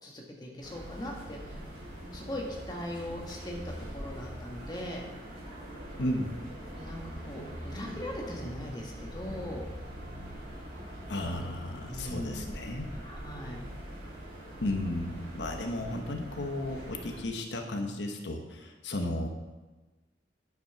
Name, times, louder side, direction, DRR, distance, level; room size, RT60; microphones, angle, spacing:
voice 1, 0.0-1.6 2.1-5.0 6.8-9.7 11.1-11.4 11.9-12.5 12.9-13.6, left 1 dB, 25° left, -1 dB, 1.8 m, -40 dB
sound 1, 0.6-17.2, equal, 50° right, 3.7 m, -43 dB
voice 2, 6.0-6.3 11.1-12.8 14.6-19.3, left 1 dB, 90° left, 3 dB, 1.1 m, -34 dB
10.5 x 6.0 x 5.9 m, 1.2 s
head